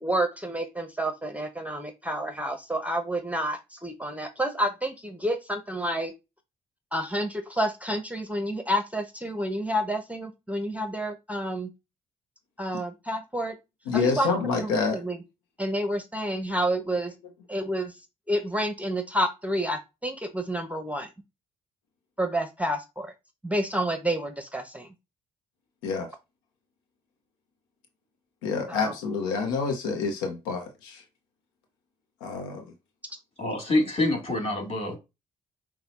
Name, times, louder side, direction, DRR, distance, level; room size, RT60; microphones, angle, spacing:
voice 1, 0.0-6.1 6.9-11.7 12.6-13.6 13.9-14.3 14.6-15.2 15.6-17.1 17.5-17.9 18.3-21.1 22.2-23.1 23.4-24.9 28.7-28.9 29.4-29.5, equal, 10° right, 0.9 m, -29 dB
voice 2, 13.9-15.0 25.8-26.1 28.4-31.0 32.2-32.7, left 4 dB, 90° left, 0.8 m, -28 dB
voice 3, 33.4-35.0, left 2 dB, 30° left, 2.9 m, -26 dB
5.6 x 2.3 x 4.1 m
hypercardioid pair, 45°, 18 cm